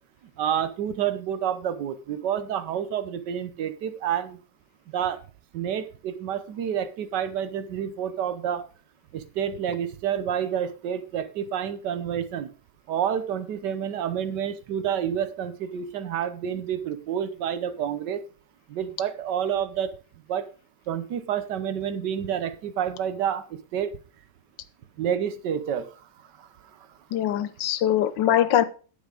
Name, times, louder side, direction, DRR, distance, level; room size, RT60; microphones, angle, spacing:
voice 1, 0.4-4.4 4.9-5.2 5.5-8.7 9.1-12.5 12.9-18.2 18.7-19.9 20.3-20.5 20.9-24.0 25.0-26.5, right 9 dB, 70° right, 12 dB, 1.4 m, -29 dB
voice 2, 27.1-28.6, left 11 dB, 80° left, 13 dB, 1.4 m, -22 dB
9.6 x 7.0 x 5.0 m, 0.37 s
omnidirectional pair, 2.0 m